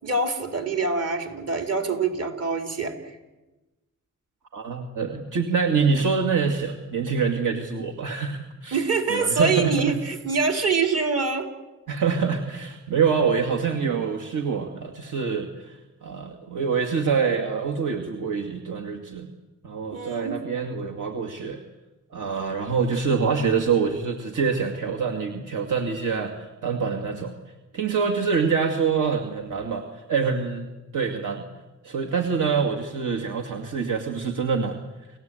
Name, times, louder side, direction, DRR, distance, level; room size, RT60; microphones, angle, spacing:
voice 1, 0.0-3.2 8.7-11.5 19.9-20.3, right 4 dB, 50° right, 5 dB, 4.0 m, -25 dB
voice 2, 4.5-8.8 9.1-9.9 11.9-19.3 19.6-21.6 22.1-27.3 27.7-30.7 30.9-31.4 31.8-34.8, right 5 dB, 70° right, 3 dB, 2.4 m, -25 dB
29.5 x 16.0 x 9.2 m, 1.1 s
cardioid pair, 85°, 32 cm